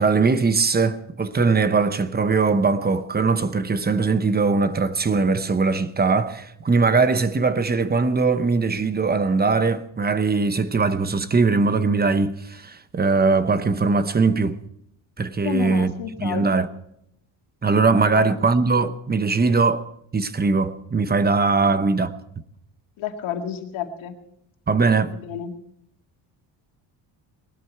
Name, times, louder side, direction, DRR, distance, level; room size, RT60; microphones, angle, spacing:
voice 1, 0.0-14.6 15.2-15.9 16.2-16.7 17.6-22.1 24.7-25.1, right 4 dB, 20° right, 0.8 m, -21 dB
voice 2, 15.4-16.7 17.9-18.3 21.6-21.7 23.0-24.1 25.1-25.5, left 8 dB, 90° left, 2.3 m, -30 dB
19.5 x 12.5 x 4.5 m
cardioid pair, 130°, 46 cm